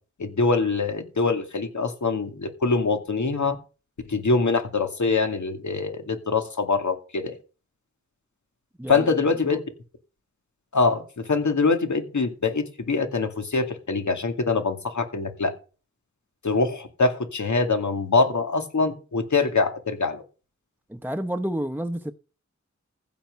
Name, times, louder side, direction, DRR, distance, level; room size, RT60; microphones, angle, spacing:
voice 1, 0.2-3.6 4.1-7.3 8.9-9.6 10.7-15.5 16.4-20.2, left 4 dB, 80° left, 2.4 m, -24 dB
voice 2, 8.8-9.2 9.5-9.6 20.9-22.1, right 1 dB, 5° right, 0.9 m, -30 dB
15.0 x 5.8 x 6.9 m
wide cardioid pair, 60°, 29 cm